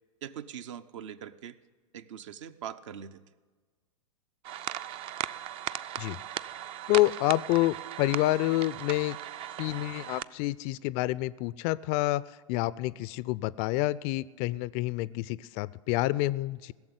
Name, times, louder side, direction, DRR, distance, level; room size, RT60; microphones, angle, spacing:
voice 1, 0.2-1.6 1.9-3.2, right 9 dB, 60° right, 11 dB, 0.8 m, -42 dB
sound 1, 4.4-10.2, right 11 dB, 30° right, 0.4 m, -38 dB
voice 2, 6.9-9.2 9.6-12.2 12.5-16.7, left 17 dB, 40° left, 20 dB, 0.4 m, -28 dB
16.5 x 7.2 x 9.6 m, 1.4 s
hypercardioid pair, 100°, 17 cm